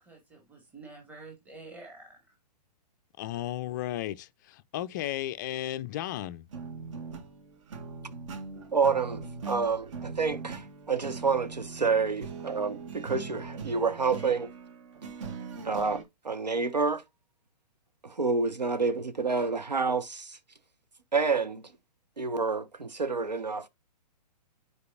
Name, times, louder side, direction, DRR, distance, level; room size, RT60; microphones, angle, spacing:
voice 1, 0.0-2.2, right 3 dB, 5° right, 2.1 m, -48 dB
voice 2, 3.2-6.4, left 13 dB, 30° left, 0.4 m, -34 dB
sound 1, 6.5-16.0, right 5 dB, 45° right, 1.6 m, -41 dB
voice 3, 8.7-14.5 15.6-17.0 18.0-20.4 21.1-21.7 22.2-23.7, right 4 dB, 80° right, 1.2 m, -28 dB
9.4 x 4.7 x 2.5 m
figure-of-eight pair, 120°, 21 cm